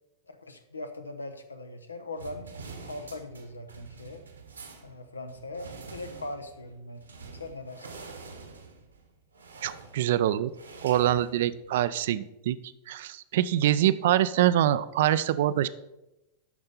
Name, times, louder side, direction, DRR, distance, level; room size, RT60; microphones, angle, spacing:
voice 1, 0.3-2.5 2.9-4.3 4.8-7.0 7.4-8.0, left 2 dB, 80° left, 8 dB, 0.8 m, -40 dB
sound 1, 2.2-12.0, right 4 dB, 75° right, 1.2 m, -47 dB
voice 2, 9.6-10.5 10.8-12.6 12.9-15.7, right 12 dB, 55° right, 15 dB, 0.4 m, -24 dB
12.0 x 4.4 x 5.4 m, 0.94 s
figure-of-eight pair, 90°, 0 cm